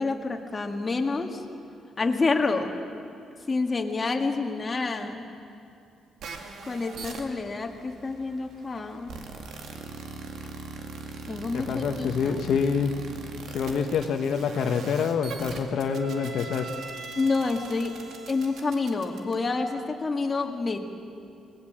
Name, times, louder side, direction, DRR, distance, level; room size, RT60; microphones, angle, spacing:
voice 1, 0.0-1.4 2.0-2.7 3.5-5.2 6.7-9.1 11.3-12.4 17.2-18.0 18.3-20.8, left 3 dB, 30° left, 3 dB, 1.9 m, -28 dB
sound 1, 6.2-19.8, right 4 dB, 70° right, 2.2 m, -41 dB
voice 2, 11.5-12.9 13.5-16.7, left 6 dB, 70° left, 5 dB, 1.2 m, -26 dB
21.0 x 18.5 x 7.4 m, 2.5 s
cardioid pair, 90°, 0 cm